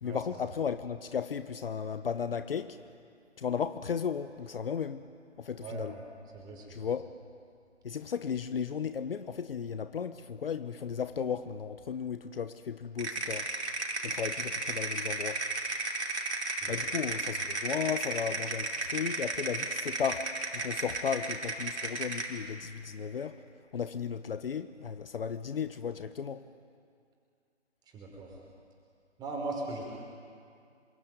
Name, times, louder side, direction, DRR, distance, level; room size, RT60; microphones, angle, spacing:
voice 1, 0.0-2.8 3.4-5.0 5.4-5.9 6.7-7.1 7.8-13.5 14.0-15.4 16.7-23.4 23.7-26.4, left 7 dB, 50° left, 11 dB, 1.1 m, -35 dB
voice 2, 5.6-6.0 6.3-6.9 16.5-16.8 27.9-28.4 29.2-29.8, right 3 dB, 10° right, 0 dB, 5.2 m, -39 dB
sound 1, 13.0-22.4, right 3 dB, 70° right, 5.1 m, -34 dB
27.0 x 23.5 x 9.4 m, 2.3 s
figure-of-eight pair, 150°, 35 cm